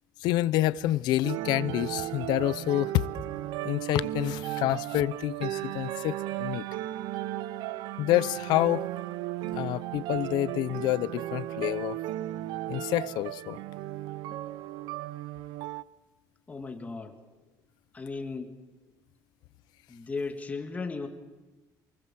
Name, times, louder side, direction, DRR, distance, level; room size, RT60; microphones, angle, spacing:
voice 1, 0.2-3.0 3.6-6.6 8.0-8.9 9.5-12.0 12.7-13.6, left 15 dB, 85° left, 0.8 m, -28 dB
sound 1, 1.2-15.8, right 15 dB, 90° right, 0.8 m, -35 dB
voice 2, 16.5-17.2 17.9-18.6 19.9-21.1, left 4 dB, 20° left, 2.0 m, -36 dB
28.0 x 20.0 x 7.6 m
cardioid pair, 155°, 7 cm